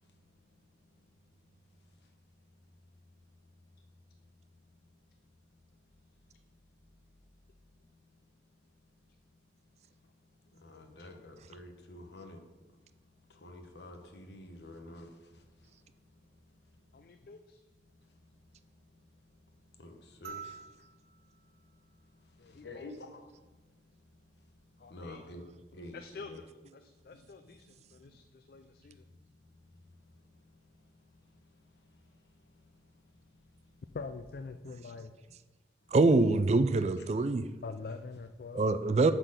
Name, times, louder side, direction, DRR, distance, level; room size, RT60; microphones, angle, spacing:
voice 1, 10.4-12.4 12.9-17.2 18.0-21.1 21.6-23.8 24.3-25.4 25.7-26.4 27.1-27.7 28.8-28.9 29.1-29.5 29.9-33.7, left 1 dB, 70° left, 5 dB, 1.0 m, -52 dB
voice 2, 16.9-17.6 22.4-22.9 24.8-25.2 25.9-29.0 33.9-35.1 37.6-38.7, left 4 dB, 55° left, 8 dB, 0.3 m, -45 dB
sound 1, 20.2-22.8 24.4-24.5, right 6 dB, 60° right, 0.8 m, -50 dB
voice 3, 35.9-37.5 38.5-39.1, right 3 dB, 35° right, 12 dB, 0.3 m, -24 dB
8.0 x 3.9 x 6.5 m, 1.2 s
head